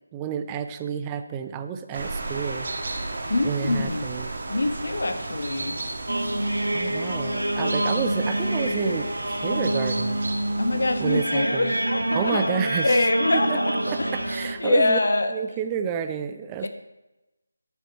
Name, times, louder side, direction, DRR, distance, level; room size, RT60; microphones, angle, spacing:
voice 1, 0.1-2.7 3.4-4.3 6.7-10.2 11.0-11.7 12.1-13.1 13.5-13.6 13.9-15.0 15.3-16.7, right 8 dB, 15° right, 9 dB, 0.5 m, -30 dB
sound 1, 1.9-11.2, right 2 dB, 45° right, 1.9 m, -34 dB
voice 2, 3.3-4.1 4.5-5.8 10.6-14.2 14.6-15.3 16.6-16.7, left 2 dB, 60° left, 7 dB, 1.4 m, -24 dB
sound 2, 6.1-14.6, right 1 dB, 85° right, 1.4 m, -27 dB
14.0 x 6.1 x 5.4 m, 0.99 s
figure-of-eight pair, 160°, 0 cm